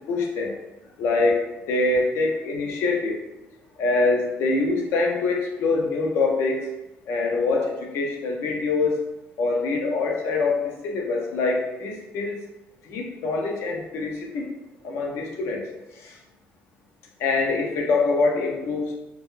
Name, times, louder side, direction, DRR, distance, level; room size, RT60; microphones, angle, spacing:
voice 1, 0.1-0.5 1.0-3.2 3.8-6.7 7.1-9.0 9.4-12.4 12.8-14.5 14.8-15.6 16.0-16.1 17.2-19.0, left 3 dB, 70° left, 0 dB, 0.5 m, -24 dB
2.2 x 2.0 x 3.0 m, 0.98 s
cardioid pair, 135°, 4 cm